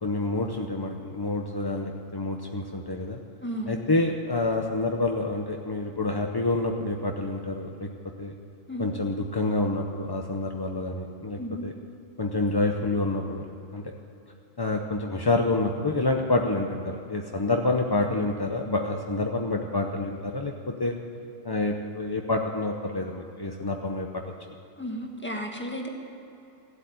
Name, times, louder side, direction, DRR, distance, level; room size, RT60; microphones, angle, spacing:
voice 1, 0.0-3.2 3.7-7.9 8.2-8.3 8.8-11.7 12.2-13.4 13.7-13.8 14.6-21.0 21.4-24.2, left 2 dB, 30° left, 2 dB, 0.4 m, -28 dB
voice 2, 3.4-3.9 8.7-8.9 11.4-11.6 24.8-25.9, equal, 10° left, 1 dB, 1.5 m, -33 dB
15.5 x 8.1 x 9.4 m, 2.9 s
omnidirectional pair, 1.5 m